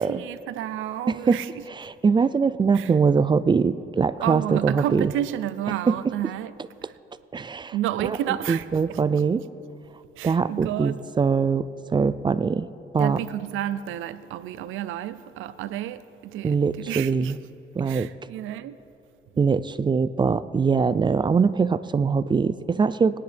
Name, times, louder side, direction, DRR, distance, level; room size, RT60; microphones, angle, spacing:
voice 1, 0.0-1.5 2.7-2.9 4.2-6.5 6.8-6.9 7.7-9.0 10.2-11.0 13.0-17.3 17.8-18.8, right 12 dB, 85° right, 0.5 m, -31 dB
voice 2, 1.1-1.4 1.7-5.1 5.9-6.0 7.3-7.7 8.0-9.4 10.2-12.7 12.9-13.2 16.4-17.4 17.7-18.1 19.4-23.2, right 5 dB, 25° right, 0.3 m, -22 dB
18.0 x 10.5 x 3.4 m
cardioid pair, 90°, 20 cm